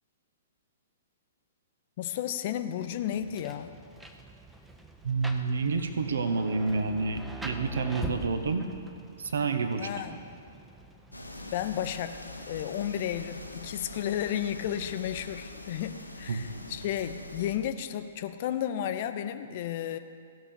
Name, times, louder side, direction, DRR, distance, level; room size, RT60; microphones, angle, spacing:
voice 1, 2.0-3.8 9.8-10.2 11.5-12.2 12.5-20.0, left 10 dB, 40° left, 10 dB, 0.6 m, -33 dB
Rain, 2.8-11.9, right 2 dB, 5° right, 0.7 m, -44 dB
voice 2, 5.0-8.7 9.2-9.9 16.3-16.5, right 4 dB, 60° right, 8 dB, 0.9 m, -29 dB
sound 1, 11.1-17.6, left 1 dB, 85° left, 1.0 m, -43 dB
16.0 x 6.0 x 6.8 m, 2.3 s
figure-of-eight pair, 115°, 0 cm